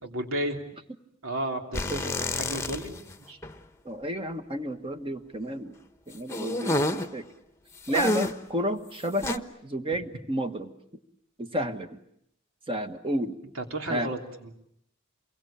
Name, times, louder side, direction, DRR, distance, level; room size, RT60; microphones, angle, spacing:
voice 1, 0.0-0.7 1.2-3.0 3.3-3.4 13.5-14.5, right 1 dB, 80° right, 4 dB, 3.2 m, -33 dB
sound 1, 1.7-3.1 3.4-3.5 6.3-7.1 7.9-8.5 9.2-9.4, left 1 dB, 15° left, 1.1 m, -28 dB
voice 2, 3.8-5.8 6.1-7.3 7.9-10.7 11.4-11.9 12.7-13.4 13.9-14.1, right 1 dB, 25° right, 8 dB, 1.4 m, -31 dB
28.0 x 23.0 x 8.8 m, 0.73 s
head